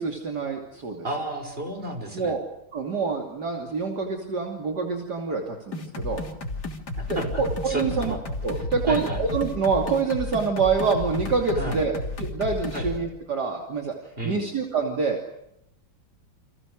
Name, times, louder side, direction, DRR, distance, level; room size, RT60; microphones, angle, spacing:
voice 1, 0.0-1.0 2.1-2.4 2.7-6.2 7.1-8.2 8.4-14.0 14.2-15.2, right 4 dB, 55° right, 2 dB, 3.3 m, -26 dB
voice 2, 1.0-2.4 7.0-8.2 8.9-9.2 11.5-11.8 12.7-12.9 14.2-14.4, right 1 dB, 25° right, 5 dB, 6.3 m, -32 dB
sound 1, 5.7-13.0, left 2 dB, 55° left, 3.7 m, -32 dB
30.0 x 27.0 x 6.6 m, 0.79 s
omnidirectional pair, 2.2 m